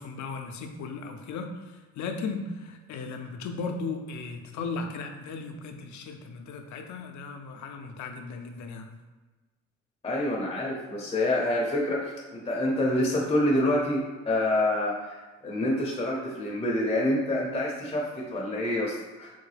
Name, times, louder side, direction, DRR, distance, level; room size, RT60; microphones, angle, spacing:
voice 1, 0.0-8.9, left 4 dB, 70° left, 5 dB, 0.5 m, -36 dB
voice 2, 10.0-15.2 15.4-19.3, left 1 dB, 20° left, -3 dB, 0.6 m, -27 dB
3.8 x 2.1 x 3.2 m, 1.3 s
cardioid pair, 90°, 30 cm